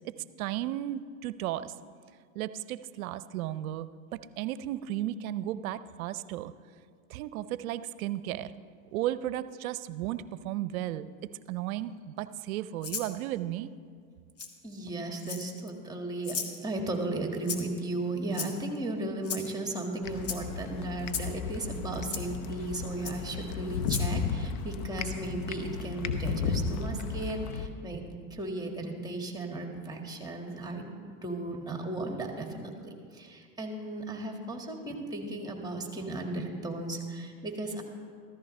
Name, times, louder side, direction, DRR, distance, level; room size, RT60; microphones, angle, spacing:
voice 1, 0.0-1.7 2.3-6.5 7.1-8.5 8.9-11.1 11.5-13.7, right 13 dB, 75° right, 15 dB, 0.6 m, -34 dB
Rattle (instrument), 12.8-13.1 14.4-14.5 15.2-15.7 16.2-16.6 17.5-17.8 18.3-18.8 19.2-19.5 20.2-20.4 21.1-21.3 22.1-22.2 23.0-23.2 23.8-24.1, left 6 dB, 35° left, 1.3 m, -35 dB
voice 2, 14.6-28.0 28.3-37.8, right 2 dB, 10° right, 3 dB, 1.9 m, -35 dB
sound 1, 20.0-27.7, left 6 dB, 60° left, 1.0 m, -34 dB
14.0 x 14.0 x 3.2 m, 2.1 s
hypercardioid pair, 90°, 43 cm